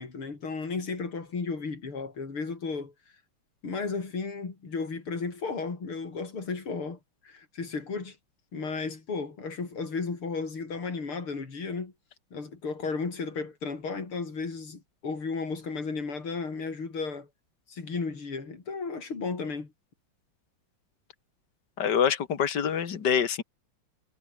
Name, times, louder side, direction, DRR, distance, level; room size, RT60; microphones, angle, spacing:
voice 1, 0.0-2.9 3.6-8.2 8.5-11.9 12.3-17.3 17.7-19.7, left 4 dB, 85° left, 5.1 m, -34 dB
voice 2, 21.8-23.4, left 8 dB, 55° left, 2.5 m, -25 dB
omnidirectional pair, 2.3 m